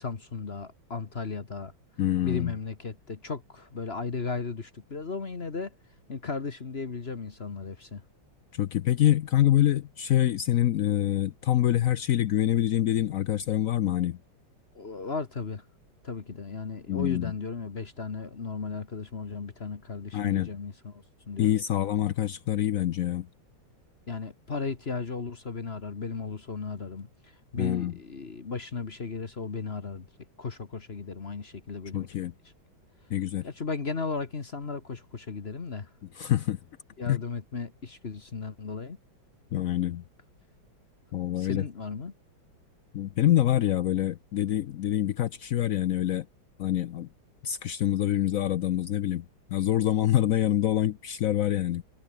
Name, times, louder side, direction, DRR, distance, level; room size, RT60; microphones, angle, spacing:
voice 1, 0.0-1.7 2.2-5.7 6.1-8.0 14.7-15.6 16.0-21.6 24.1-30.1 30.4-32.3 33.4-35.9 37.0-39.0 41.4-42.1, left 4 dB, 35° left, 1.4 m, -35 dB
voice 2, 2.0-2.5 8.5-14.2 16.9-17.3 20.1-20.5 21.4-23.3 27.6-27.9 31.9-32.3 33.1-33.5 36.2-36.6 37.1-37.2 39.5-40.0 41.1-41.6 42.9-46.3 46.6-47.1 47.4-49.2 49.5-51.8, left 12 dB, 85° left, 0.7 m, -26 dB
omnidirectional pair, 2.2 m